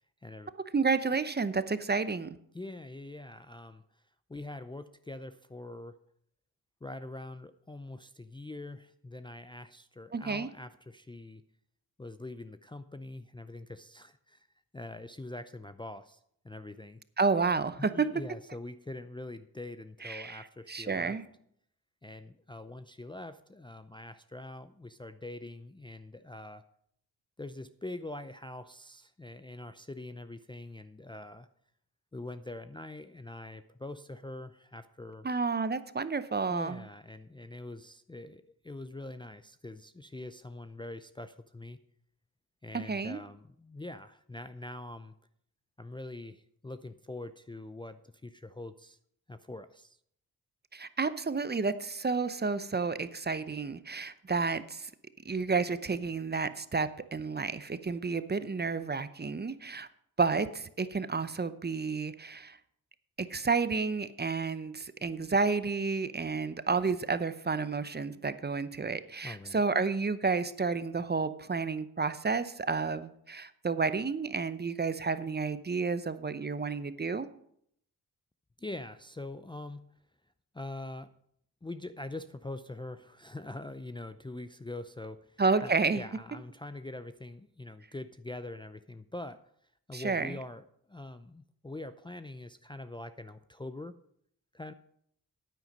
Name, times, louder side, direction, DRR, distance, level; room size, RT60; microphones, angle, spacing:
voice 1, 0.2-0.5 2.5-3.8 4.3-6.0 6.8-11.4 12.0-14.5 14.7-16.2 16.4-17.0 17.8-21.2 22.0-26.6 27.4-31.5 32.1-35.3 36.5-41.8 42.6-45.1 45.8-49.0 49.3-50.0 69.2-69.6 78.6-79.8 80.5-81.1 81.6-89.4 89.9-93.9 94.5-94.7, left 2 dB, 15° left, 10 dB, 0.5 m, -44 dB
voice 2, 0.7-2.4 10.1-10.5 17.2-18.1 20.0-21.2 35.2-36.8 42.7-43.2 50.7-54.9 55.2-59.9 60.2-62.6 63.2-77.3 85.4-86.0 89.9-90.4, right 4 dB, 25° right, 13 dB, 0.7 m, -31 dB
9.2 x 9.2 x 5.4 m, 0.70 s
cardioid pair, 60°, 38 cm